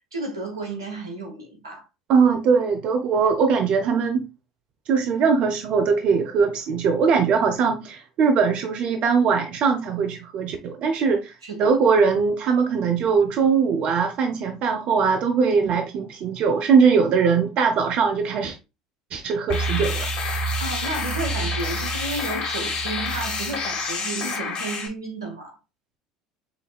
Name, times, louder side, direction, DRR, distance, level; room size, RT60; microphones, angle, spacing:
voice 1, 0.1-1.8 11.4-11.8 20.4-25.6, right 2 dB, 85° right, 1.2 m, -32 dB
voice 2, 2.1-4.3 4.9-11.3 11.6-18.5 19.1-20.1, right 5 dB, 50° right, 0.7 m, -21 dB
sound 1, 19.5-24.9, left 1 dB, 45° left, 1.3 m, -27 dB
5.2 x 3.5 x 2.3 m
hypercardioid pair, 70°, 2 cm